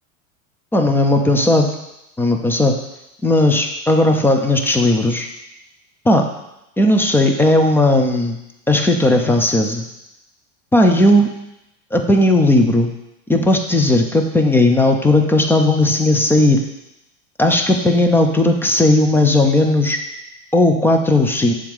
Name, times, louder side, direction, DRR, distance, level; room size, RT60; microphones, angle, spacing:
voice 1, 0.7-1.7 2.2-2.8 3.2-5.3 6.1-6.3 6.8-8.4 8.7-9.8 10.7-11.3 11.9-12.9 13.3-16.6 17.4-20.0 20.5-21.5, left 1 dB, 5° left, 4 dB, 0.4 m, -15 dB
7.4 x 3.5 x 4.6 m, 0.90 s
supercardioid pair, 115°, 40 cm